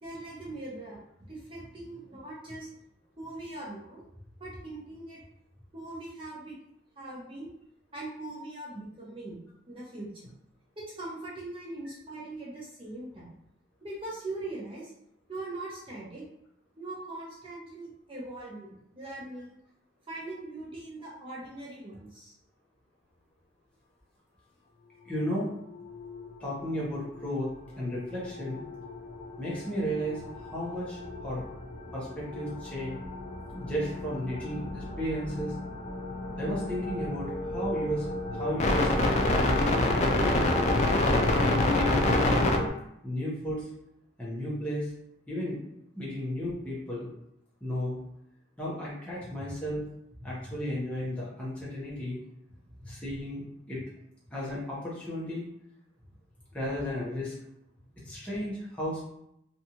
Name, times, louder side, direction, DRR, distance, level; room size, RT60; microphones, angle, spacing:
voice 1, 0.0-2.7 3.2-4.0 4.4-5.2 5.7-6.6 7.0-7.5 7.9-9.4 9.7-10.3 10.8-13.4 13.8-14.9 15.3-16.2 16.8-19.6 20.1-22.3 49.2-49.5 50.2-50.6 52.8-52.9 58.1-58.2, right 2 dB, 30° right, -6 dB, 0.5 m, -41 dB
voice 2, 25.0-25.5 26.4-28.6 29.4-31.4 31.9-33.0 33.6-35.5 36.4-38.1 38.3-40.5 41.1-42.6 43.0-43.7 44.2-44.9 45.3-45.6 46.0-47.1 47.6-48.0 48.6-49.8 50.2-52.2 52.9-53.4 53.7-53.8 54.3-55.4 56.5-57.3 58.0-59.0, equal, 5° left, -7 dB, 0.7 m, -34 dB
sound 1, 25.4-26.3 27.0-27.3 28.1-42.7, left 2 dB, 35° left, 0.3 m, -29 dB
2.6 x 2.3 x 2.8 m, 0.79 s
head